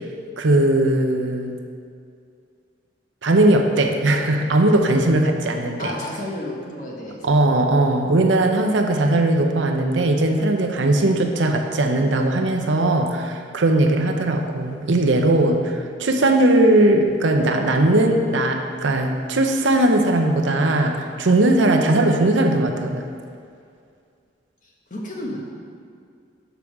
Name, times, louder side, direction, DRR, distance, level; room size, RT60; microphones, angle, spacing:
voice 1, 0.4-1.6 3.2-5.9 7.2-23.0, right 1 dB, 85° right, 4 dB, 0.7 m, -19 dB
voice 2, 5.8-7.4 24.9-25.4, left 1 dB, 45° left, -2 dB, 1.3 m, -31 dB
6.9 x 4.9 x 5.9 m, 2.3 s
head